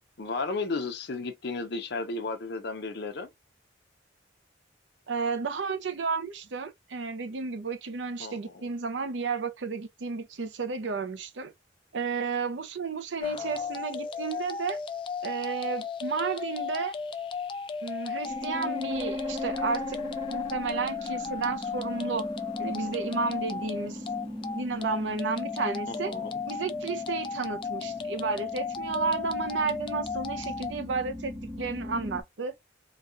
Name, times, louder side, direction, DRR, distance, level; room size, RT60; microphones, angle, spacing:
voice 1, 0.2-3.3 8.2-8.6 25.9-26.3, left 3 dB, 60° left, 0.7 m, -34 dB
voice 2, 5.1-11.5 11.9-14.8 15.2-16.9 17.8-20.0 20.3-22.3 22.6-24.0 24.6-26.1 26.5-32.5, right 4 dB, 75° right, 0.6 m, -32 dB
sound 1, 13.2-30.7, left 5 dB, 30° left, 0.3 m, -35 dB
sound 2, 18.3-32.2, left 1 dB, 15° right, 0.7 m, -39 dB
4.0 x 2.3 x 2.5 m
head